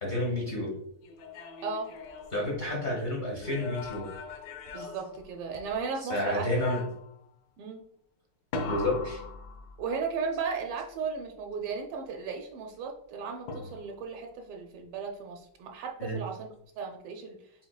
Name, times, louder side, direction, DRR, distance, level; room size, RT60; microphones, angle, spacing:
voice 1, 0.0-0.7 2.3-4.1 6.1-6.8 8.7-9.2 16.0-16.2, left 1 dB, 45° left, -2 dB, 0.6 m, -30 dB
sound 1, 1.0-2.9 3.4-5.8 6.2-7.2 8.5-10.1 13.5-14.1, left 4 dB, 70° left, 1.0 m, -40 dB
voice 2, 4.7-6.5 7.6-7.8 9.8-16.5 16.8-17.4, right 5 dB, 80° right, 3 dB, 1.5 m, -35 dB
5.8 x 3.8 x 2.3 m, 0.70 s
omnidirectional pair, 2.4 m